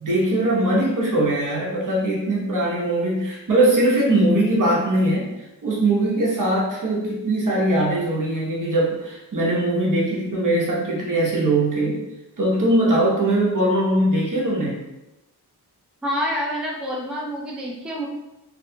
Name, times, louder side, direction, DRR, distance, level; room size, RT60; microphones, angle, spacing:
voice 1, 0.0-5.3 5.6-12.0 12.4-14.8, right 1 dB, 50° right, -4 dB, 0.9 m, -21 dB
voice 2, 16.0-18.1, equal, ahead, -4 dB, 0.4 m, -27 dB
2.6 x 2.2 x 2.7 m, 0.95 s
wide cardioid pair, 105°, 40 cm